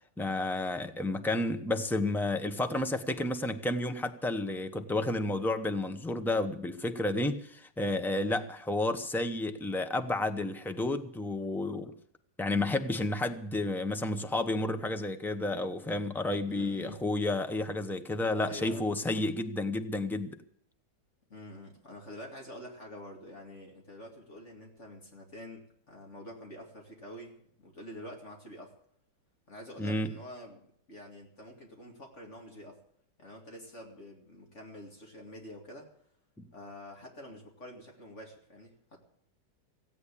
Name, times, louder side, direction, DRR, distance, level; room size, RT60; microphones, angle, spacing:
voice 1, 0.2-11.9 12.4-20.4 29.8-30.1, left 2 dB, 5° left, 7 dB, 0.4 m, -31 dB
voice 2, 16.5-17.0 18.4-18.9 21.3-28.7 29.5-30.6 30.9-32.8 33.2-35.9 36.5-39.0, left 1 dB, 45° left, 0 dB, 2.7 m, -47 dB
16.5 x 8.6 x 8.5 m, 0.69 s
omnidirectional pair, 1.8 m